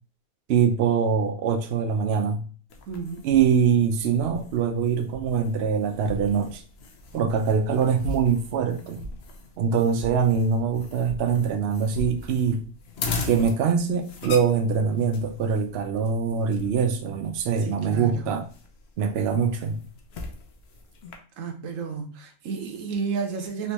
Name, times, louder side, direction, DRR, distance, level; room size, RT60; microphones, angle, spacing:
voice 1, 0.5-2.4 3.2-6.6 7.1-9.0 9.6-12.6 13.3-18.4 19.0-19.8, right 6 dB, 65° right, 0.7 m, -23 dB
sound 1, 2.7-21.2, left 3 dB, 60° left, 0.8 m, -39 dB
voice 2, 2.9-3.3 17.5-18.3 21.4-23.7, right 5 dB, 80° right, 1.1 m, -32 dB
3.3 x 2.9 x 2.9 m
omnidirectional pair, 1.4 m